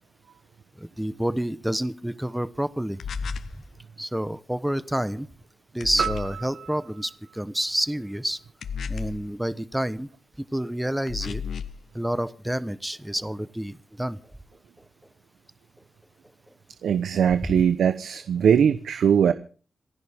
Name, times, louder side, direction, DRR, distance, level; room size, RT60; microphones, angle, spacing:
voice 1, 0.8-3.0 4.0-5.3 5.7-8.4 8.9-10.1 10.5-11.4 11.9-14.2, right 1 dB, 5° right, 15 dB, 1.0 m, -29 dB
sound 1, 3.0-3.6 5.8-6.4 8.6-9.3 11.1-11.8, left 6 dB, 75° left, 0.7 m, -33 dB
sound 2, 6.0-8.4, right 7 dB, 65° right, 1.5 m, -34 dB
voice 2, 16.8-19.3, right 8 dB, 90° right, 11 dB, 0.9 m, -20 dB
27.5 x 11.0 x 3.6 m, 0.39 s
wide cardioid pair, 100°, 0 cm